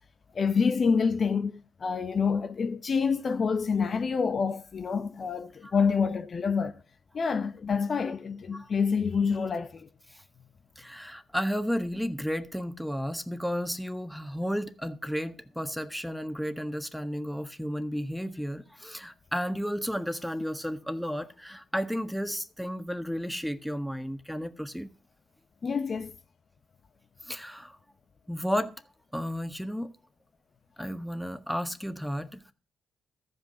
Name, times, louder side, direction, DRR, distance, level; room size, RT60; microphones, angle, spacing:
voice 1, 0.3-6.7 7.1-9.9 25.6-26.1, left 5 dB, 50° left, 0.8 m, -27 dB
voice 2, 10.8-24.9 27.2-27.8 28.3-28.7 29.1-29.9 30.8-32.5, equal, ahead, 1.4 m, -33 dB
14.0 x 5.3 x 8.2 m
supercardioid pair, 55°, 0 cm